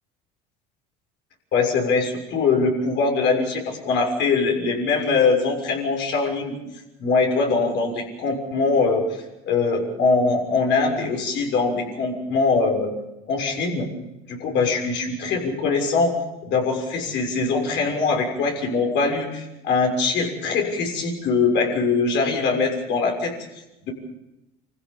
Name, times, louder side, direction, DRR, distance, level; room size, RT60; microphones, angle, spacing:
voice 1, 1.5-6.6 7.0-12.9 13.3-13.9 14.3-16.1 16.4-23.3, left 4 dB, 65° left, 1 dB, 6.7 m, -22 dB
27.0 x 15.5 x 7.2 m, 0.95 s
hypercardioid pair, 75°, 20 cm